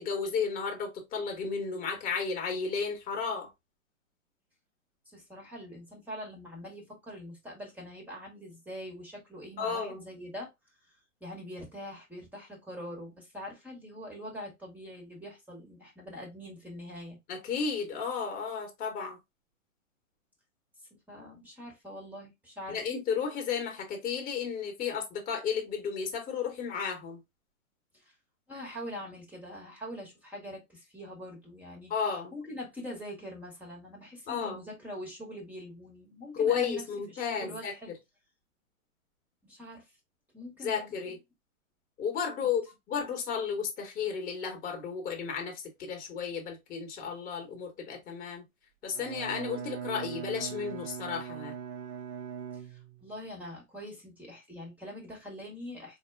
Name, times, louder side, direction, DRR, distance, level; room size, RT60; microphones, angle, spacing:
voice 1, 0.0-3.5 9.6-10.0 17.3-19.2 22.7-27.2 31.9-32.3 34.3-34.6 36.3-37.7 40.6-41.2 42.0-42.6 42.9-48.4 48.8-51.5, left 6 dB, 20° left, 1.0 m, -33 dB
voice 2, 5.1-10.5 11.2-17.2 21.1-22.8 27.9-28.1 28.5-36.8 37.1-37.9 39.4-39.9 40.3-41.0 52.5-56.0, equal, 5° right, 0.9 m, -43 dB
Bowed string instrument, 48.9-53.2, right 7 dB, 30° right, 0.6 m, -40 dB
4.2 x 2.1 x 3.3 m
hypercardioid pair, 125°, 41 cm